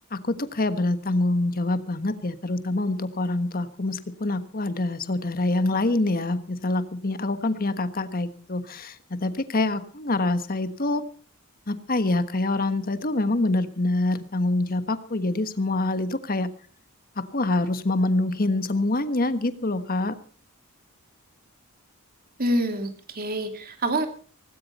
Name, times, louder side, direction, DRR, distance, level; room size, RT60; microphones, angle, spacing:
voice 1, 0.1-11.0 11.7-16.5 17.2-20.1, left 2 dB, 40° left, 11 dB, 1.4 m, -25 dB
voice 2, 22.4-24.1, right 1 dB, 45° right, 6 dB, 2.6 m, -26 dB
18.0 x 16.5 x 4.3 m, 0.40 s
head